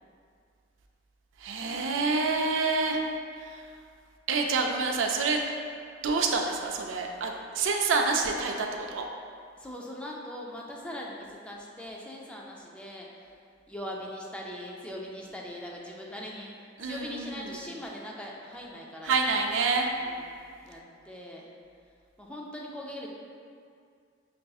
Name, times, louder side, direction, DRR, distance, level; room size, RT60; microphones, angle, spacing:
voice 1, 1.4-3.0 3.4-3.7 4.3-5.4 6.0-9.1 16.8-17.6 19.0-19.9, right 4 dB, 80° right, 2 dB, 0.4 m, -27 dB
voice 2, 9.6-13.1 13.7-16.5 16.8-19.2 20.0-20.8 21.1-21.5 22.2-23.1, left 1 dB, 5° left, -2 dB, 0.3 m, -41 dB
5.7 x 2.6 x 2.3 m, 2.3 s
head